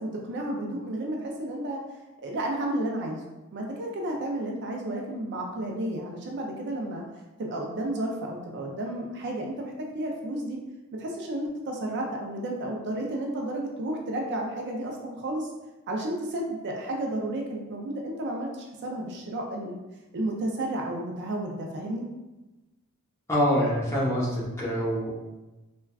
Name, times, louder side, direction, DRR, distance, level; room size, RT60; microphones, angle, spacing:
voice 1, 0.0-1.8 2.2-3.2 3.5-7.0 7.4-10.6 11.0-15.5 15.9-19.8 20.1-22.0, right 1 dB, 50° right, 0 dB, 0.4 m, -32 dB
voice 2, 23.3-25.1, equal, 10° left, -7 dB, 0.8 m, -25 dB
3.4 x 2.2 x 2.3 m, 1.1 s
head